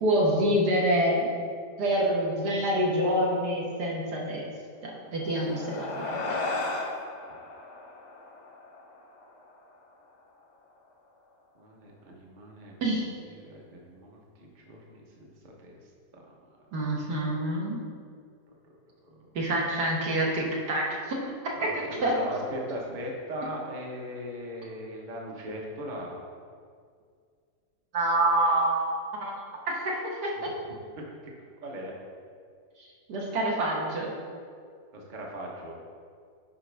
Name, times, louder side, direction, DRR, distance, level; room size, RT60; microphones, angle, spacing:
voice 1, 0.0-1.3 1.8-4.5 4.8-6.4 12.8-13.1 16.7-17.8 19.4-21.2 21.6-22.1 27.9-28.8 29.1-29.3 29.7-30.5 33.1-34.1, right 1 dB, 75° right, -3 dB, 1.8 m, -27 dB
sound 1, 5.1-9.8, left 3 dB, 85° left, 1.7 m, -35 dB
voice 2, 11.5-12.7 13.3-15.8 16.1-16.5 16.8-16.9 19.1-19.3 21.6-26.2 30.3-30.5 31.0-31.3 31.6-31.9 34.9-35.8, equal, 35° right, -1 dB, 1.0 m, -39 dB
9.8 x 5.1 x 3.3 m, 2.1 s
omnidirectional pair, 1.8 m